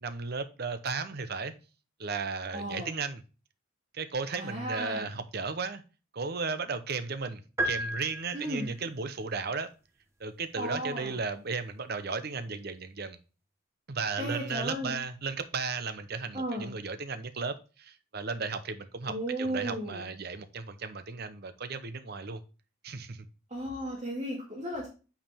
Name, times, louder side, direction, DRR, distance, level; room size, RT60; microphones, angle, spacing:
voice 1, 0.0-1.5 2.0-3.2 3.9-5.8 6.1-9.7 10.2-13.2 13.9-22.4 22.8-23.3, right 4 dB, 50° right, 11 dB, 0.7 m, -35 dB
voice 2, 2.5-2.9 4.3-5.0 8.3-8.7 10.6-11.2 14.2-15.0 16.3-16.7 19.1-20.1 23.5-24.9, right 1 dB, 30° right, -6 dB, 2.0 m, -35 dB
sound 1, 7.6-8.9, right 1 dB, 15° right, 1.1 m, -33 dB
8.8 x 4.8 x 3.5 m, 0.33 s
head